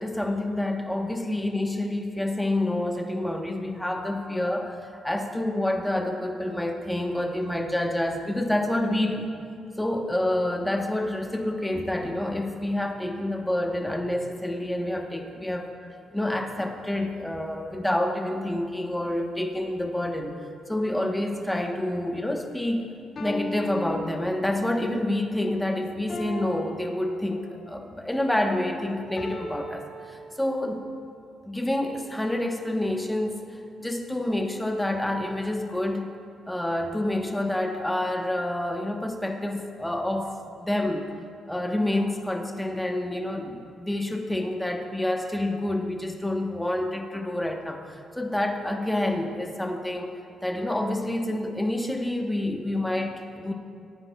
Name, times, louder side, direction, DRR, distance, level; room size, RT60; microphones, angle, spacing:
voice 1, 0.0-4.8 5.0-9.3 9.8-15.7 16.1-20.3 20.7-22.9 23.2-30.8 31.4-33.4 33.8-36.1 36.5-40.3 40.6-41.1 41.5-50.1 50.4-53.5, left 1 dB, 5° left, 2 dB, 1.1 m, -28 dB
sound 1, 23.2-24.8 26.1-27.7 29.2-30.8, equal, 50° left, 2.2 m, -38 dB
18.5 x 9.6 x 2.3 m, 2.4 s
cardioid pair, 85°, 0 cm